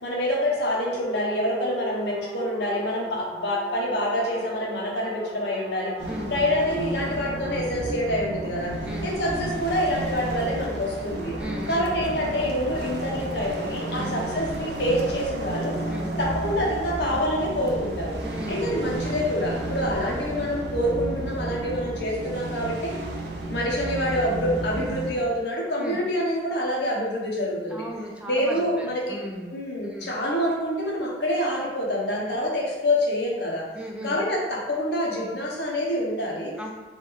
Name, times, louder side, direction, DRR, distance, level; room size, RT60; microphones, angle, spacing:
voice 1, 0.0-5.9 6.3-8.7 9.0-11.3 11.7-15.8 16.2-18.2 18.5-22.9 23.5-27.8 28.3-29.2 29.5-33.6 34.0-36.5, equal, 70° left, -3 dB, 1.1 m, -26 dB
sound 1, 0.7-7.7 9.4-10.5, left 1 dB, 45° left, 1.3 m, -40 dB
sound 2, 6.0-25.1, right 1 dB, 70° right, 0.7 m, -32 dB
voice 2, 11.4-11.9 14.0-14.1 15.9-16.1 18.2-18.7 25.8-26.0 27.7-29.5 29.8-30.2 32.2-32.4 33.7-34.2 36.6-36.7, equal, 5° right, 0 dB, 0.4 m, -36 dB
4.1 x 2.6 x 4.6 m, 1.2 s
head